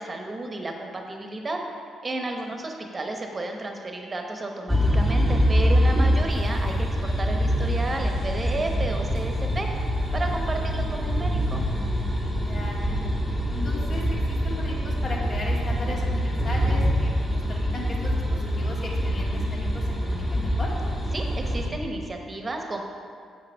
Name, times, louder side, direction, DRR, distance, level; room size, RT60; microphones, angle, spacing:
voice 1, 0.0-1.6 2.0-9.7 10.1-11.6 21.1-22.8, right 2 dB, 25° right, 3 dB, 1.0 m, -32 dB
sound 1, 4.7-21.7, equal, 15° left, 1.4 m, -25 dB
sound 2, 6.3-20.5, left 1 dB, 90° left, 2.2 m, -43 dB
voice 2, 10.6-11.2 12.4-13.0 13.5-20.7, left 1 dB, 50° left, -3 dB, 2.2 m, -37 dB
8.0 x 6.7 x 5.4 m, 2.2 s
cardioid pair, 90°, 0 cm